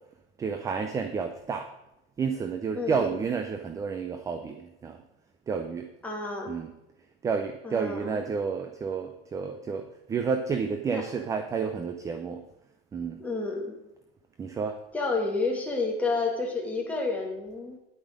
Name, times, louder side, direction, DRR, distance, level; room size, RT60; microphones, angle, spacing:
voice 1, 0.4-1.7 2.2-5.0 5.5-5.9 6.5-6.7 7.2-12.4 12.9-13.2 14.4-14.8, right 5 dB, 10° right, 7 dB, 0.3 m, -30 dB
voice 2, 2.8-3.2 6.0-6.6 7.6-8.2 10.9-11.1 13.2-13.8 14.9-17.8, left 3 dB, 5° left, -2 dB, 2.0 m, -30 dB
10.0 x 8.8 x 5.1 m, 0.89 s
supercardioid pair, 165°, 31 cm